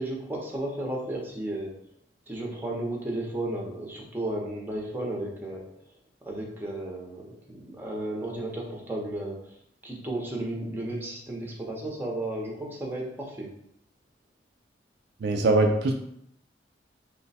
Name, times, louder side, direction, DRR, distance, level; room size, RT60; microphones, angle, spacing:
voice 1, 0.0-1.7 2.3-5.7 6.3-9.6 9.8-13.5, right 1 dB, 10° right, -2 dB, 0.7 m, -33 dB
voice 2, 15.2-15.9, right 2 dB, 65° right, 2 dB, 0.4 m, -22 dB
3.1 x 2.1 x 4.0 m, 0.72 s
head